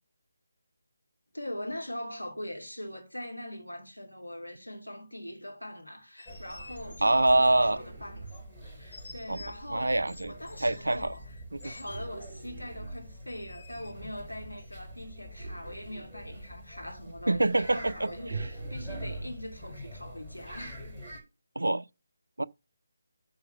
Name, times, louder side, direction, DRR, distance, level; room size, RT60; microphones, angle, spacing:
voice 1, 1.3-8.3 8.6-9.9 10.2-11.2 11.6-20.9, left 1 dB, 85° left, 2.9 m, -42 dB
sound 1, 6.0-7.8 8.3-8.4 8.9-9.6 10.1-12.1 13.3-13.9 14.6-14.8, left 3 dB, 45° left, 1.3 m, -51 dB
sound 2, 6.2-21.2, equal, 5° left, 5.6 m, -46 dB
voice 2, 7.0-7.8 9.3-9.4 9.7-10.3 10.6-11.1 11.5-11.7 17.3-18.4 21.6-21.8 22.4-22.5, right 2 dB, 70° right, 0.5 m, -25 dB
sound 3, 7.2-8.7 11.9-13.4 15.4-16.6 18.3-20.0, right 3 dB, 35° right, 3.5 m, -42 dB
9.4 x 4.5 x 6.0 m
figure-of-eight pair, 150°, 0 cm